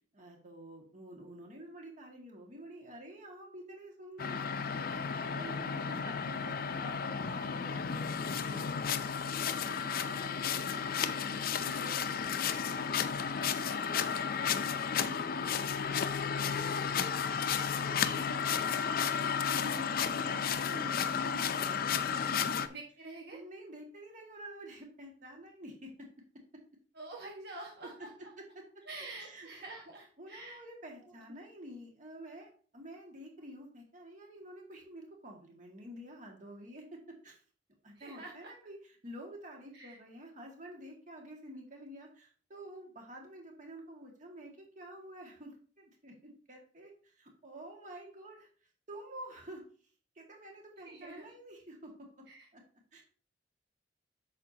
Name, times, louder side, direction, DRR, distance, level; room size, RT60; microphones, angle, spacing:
voice 1, 0.1-9.3 9.6-15.2 15.5-18.4 19.6-22.6 23.3-26.1 28.4-28.6 29.2-29.8 30.2-37.4 37.8-48.5 48.9-49.6 50.2-52.3 52.5-52.6 52.9-53.0, equal, 45° right, 1 dB, 2.0 m, -49 dB
sound 1, 4.2-22.7, left 7 dB, 55° left, 0.5 m, -33 dB
voice 2, 22.7-23.4 26.9-28.3 28.9-30.6 31.0-31.4 38.0-38.5 39.7-40.0 50.8-51.3 52.3-52.5, right 2 dB, 65° right, -1 dB, 1.6 m, -47 dB
8.4 x 6.6 x 2.8 m, 0.43 s
head